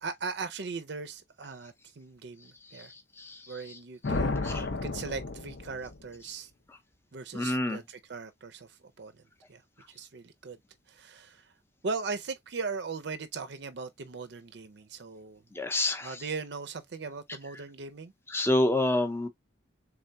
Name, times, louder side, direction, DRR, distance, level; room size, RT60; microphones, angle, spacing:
voice 1, 0.0-2.9 3.5-6.5 7.1-9.2 9.5-9.6 9.9-10.6 10.9-11.4 11.8-15.4 16.0-18.1, right 4 dB, 60° right, 0.5 m, -39 dB
sound 1, 4.0-6.0, left 3 dB, 65° left, 0.6 m, -32 dB
voice 2, 7.3-7.8 15.5-16.2 18.3-19.3, left 1 dB, 10° left, 0.6 m, -28 dB
3.6 x 3.3 x 2.6 m
head